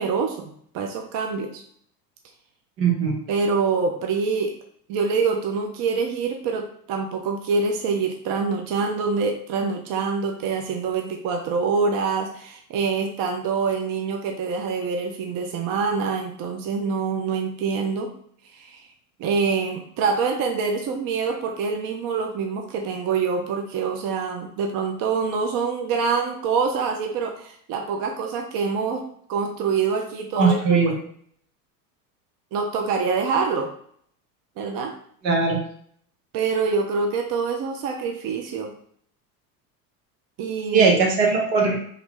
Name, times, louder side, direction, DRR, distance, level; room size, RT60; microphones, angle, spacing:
voice 1, 0.0-1.6 3.3-4.6 4.9-18.1 18.5-18.8 19.2-31.0 32.5-33.7 34.6-34.9 36.3-38.7 40.4-40.9, right 5 dB, 45° right, 3 dB, 0.6 m, -25 dB
voice 2, 2.8-3.2 30.4-30.9 35.2-35.6 40.7-41.8, right 5 dB, 80° right, 0 dB, 1.2 m, -19 dB
3.2 x 2.3 x 3.7 m, 0.62 s
hypercardioid pair, 90°, 48 cm